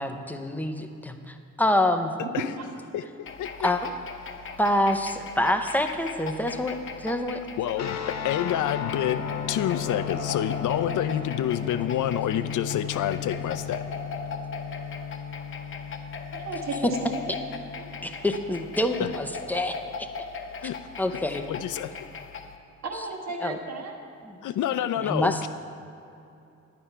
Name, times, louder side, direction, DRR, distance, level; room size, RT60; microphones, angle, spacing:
voice 1, 0.0-2.1 3.6-3.8 4.6-7.4 18.0-20.1 21.0-21.4 23.4-23.6 24.2-24.4 25.0-25.5, left 1 dB, 5° left, 6 dB, 0.5 m, -26 dB
voice 2, 2.9-3.7 7.6-8.0 8.2-13.8 19.0-19.1 20.6-20.8 21.1-21.2 21.5-22.0 24.4-25.5, left 10 dB, 85° left, 13 dB, 0.6 m, -28 dB
sound 1, 3.3-22.6, left 4 dB, 45° left, 0.8 m, -39 dB
sound 2, 7.8-18.1, left 9 dB, 65° left, 1.1 m, -35 dB
voice 3, 16.3-17.2 17.8-17.9 22.8-24.0, right 3 dB, 60° right, 2 dB, 1.6 m, -33 dB
10.5 x 9.9 x 5.6 m, 2.7 s
wide cardioid pair, 175°, 30 cm